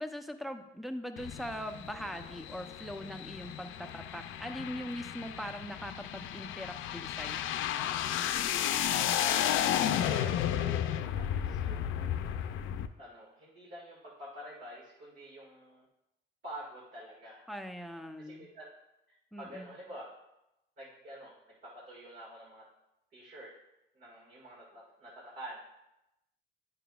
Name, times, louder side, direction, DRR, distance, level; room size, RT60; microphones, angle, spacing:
voice 1, 0.0-7.4 17.5-18.5 19.3-19.7, equal, ahead, 7 dB, 0.6 m, -41 dB
sound 1, 1.2-12.9, left 10 dB, 85° left, 0.4 m, -33 dB
voice 2, 8.9-12.4 13.0-15.9 16.4-17.5 18.2-18.7 19.1-20.1 20.8-22.7 23.1-23.5 23.9-25.7, right 1 dB, 55° right, -6 dB, 1.9 m, -48 dB
9.0 x 5.9 x 2.4 m, 0.90 s
cardioid pair, 90°, 20 cm